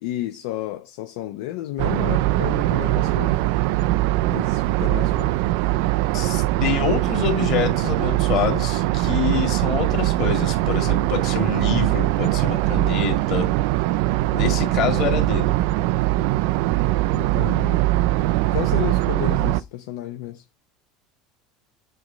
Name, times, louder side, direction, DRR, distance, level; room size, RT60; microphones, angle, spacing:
voice 1, 0.0-3.4 4.3-5.4 17.1-17.9 18.4-20.4, left 14 dB, 70° left, 0.6 m, -32 dB
sound 1, 1.8-19.6, right 17 dB, 65° right, 0.3 m, -21 dB
voice 2, 6.1-13.5 14.3-15.6, left 6 dB, 45° left, 2.0 m, -26 dB
7.8 x 3.1 x 4.9 m
cardioid pair, 170°, 0 cm